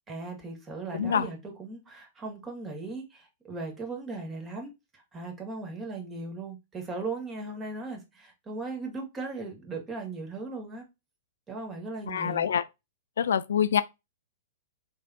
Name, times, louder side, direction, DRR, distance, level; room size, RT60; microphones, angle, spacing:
voice 1, 0.1-10.8 11.5-12.5, right 3 dB, 20° right, 1.9 m, -38 dB
voice 2, 0.9-1.3 12.1-12.6 13.2-13.8, left 8 dB, 70° left, 0.4 m, -25 dB
4.8 x 3.5 x 2.7 m
figure-of-eight pair, 105°, 0 cm